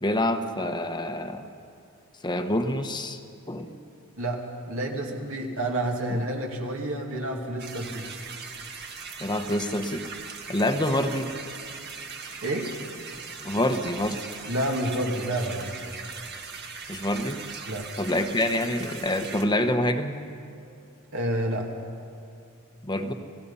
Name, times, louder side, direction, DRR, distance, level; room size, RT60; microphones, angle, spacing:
voice 1, 0.0-1.5 2.2-3.2 3.5-3.7 9.2-10.0 10.5-11.3 13.4-14.2 16.9-17.4 18.0-20.1 22.8-23.1, left 1 dB, 20° left, 7 dB, 1.1 m, -26 dB
voice 2, 4.7-8.1 12.4-12.7 14.5-16.0 17.7-17.9 21.1-21.7, right 1 dB, 65° right, 1 dB, 2.5 m, -29 dB
sound 1, 7.6-19.4, right 5 dB, 50° right, 1.7 m, -40 dB
29.5 x 16.5 x 5.6 m, 2.5 s
head